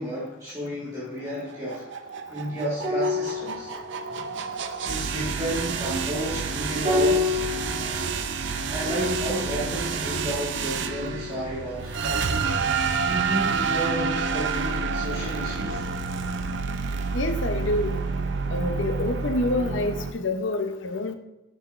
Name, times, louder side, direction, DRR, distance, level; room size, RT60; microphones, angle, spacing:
voice 1, 0.0-1.9 2.3-3.7 4.8-7.4 8.7-12.8 13.0-15.9, right 1 dB, 15° right, 1.5 m, -32 dB
sound 1, 1.3-20.1, right 5 dB, 75° right, 0.5 m, -29 dB
sound 2, 2.8-11.5 11.8-12.0, left 3 dB, 35° right, 1.8 m, -31 dB
voice 2, 17.1-18.0 18.5-21.2, left 2 dB, 90° left, 0.6 m, -27 dB
8.1 x 5.8 x 2.4 m
head